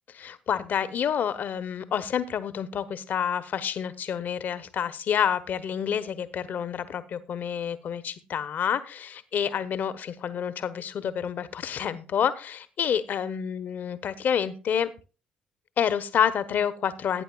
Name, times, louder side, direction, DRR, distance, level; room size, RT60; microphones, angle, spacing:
voice 1, 0.1-14.9 15.8-17.2, left 8 dB, 50° left, 15 dB, 0.9 m, -28 dB
18.0 x 9.5 x 2.3 m, 0.32 s
figure-of-eight pair, 45°, 4 cm